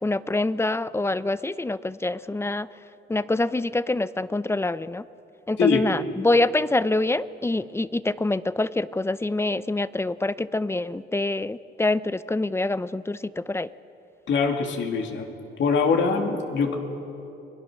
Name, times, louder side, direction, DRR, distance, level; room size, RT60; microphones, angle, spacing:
voice 1, 0.0-2.7 3.1-5.1 5.5-13.7, left 2 dB, 15° left, 15 dB, 0.6 m, -25 dB
voice 2, 14.3-15.3 15.6-16.8, left 5 dB, 70° left, 3 dB, 2.9 m, -23 dB
30.0 x 22.5 x 6.5 m, 2.9 s
cardioid pair, 90°, 20 cm